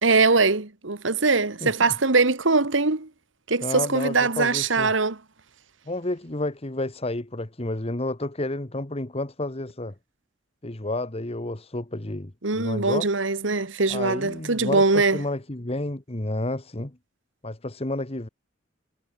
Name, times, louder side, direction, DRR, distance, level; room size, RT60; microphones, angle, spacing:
voice 1, 0.0-3.1 3.5-5.2 12.4-15.2, right 3 dB, 70° right, 1.8 m, -22 dB
voice 2, 1.6-1.9 3.6-4.9 5.9-9.9 10.6-13.1 13.9-17.0 17.4-18.3, left 2 dB, 30° left, 1.5 m, -31 dB
head